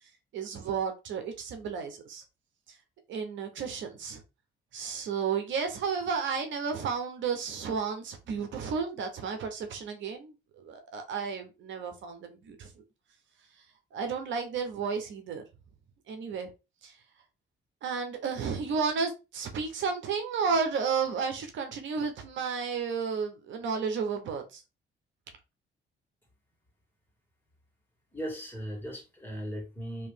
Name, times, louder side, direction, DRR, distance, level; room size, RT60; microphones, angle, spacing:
voice 1, 0.3-2.2 2.7-2.8 3.1-4.2 4.7-12.7 13.9-15.4 16.1-16.5 16.8-16.9 17.8-24.6, right 5 dB, 75° right, 0.8 m, -32 dB
voice 2, 28.1-30.1, equal, 10° left, 1.8 m, -37 dB
3.0 x 2.8 x 3.5 m
cardioid pair, 90°, 20 cm